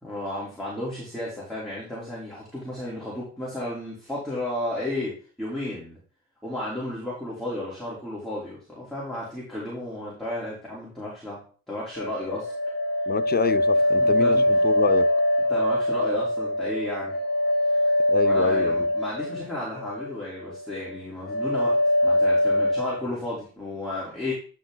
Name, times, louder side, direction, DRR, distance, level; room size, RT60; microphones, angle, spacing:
voice 1, 0.0-6.0 6.4-11.4 11.7-12.5 14.0-14.7 15.5-17.2 17.7-17.9 18.2-21.8 22.0-24.3, left 1 dB, ahead, 3.4 m, -33 dB
sound 1, 11.9-20.1 20.4-20.9 21.2-23.0, left 1 dB, 50° left, 1.9 m, -23 dB
voice 2, 13.1-15.1 18.1-18.9, left 7 dB, 30° left, 0.6 m, -27 dB
10.0 x 4.5 x 3.9 m
cardioid pair, 90°, 30 cm